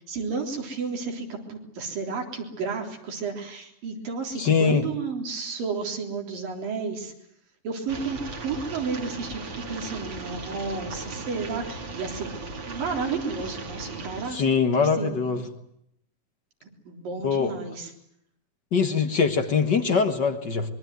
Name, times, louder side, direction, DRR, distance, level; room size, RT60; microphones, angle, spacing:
voice 1, 0.1-7.1 7.6-12.4 12.7-14.4 14.7-15.3 16.6-17.9, right 4 dB, 70° right, 2 dB, 5.4 m, -32 dB
voice 2, 4.4-4.8 14.3-15.4 17.2-17.5 18.7-20.7, left 5 dB, 50° left, 7 dB, 1.3 m, -22 dB
sound 1, 7.9-14.3, right 3 dB, 35° right, 2.7 m, -37 dB
24.5 x 23.5 x 9.5 m, 0.75 s
omnidirectional pair, 4.2 m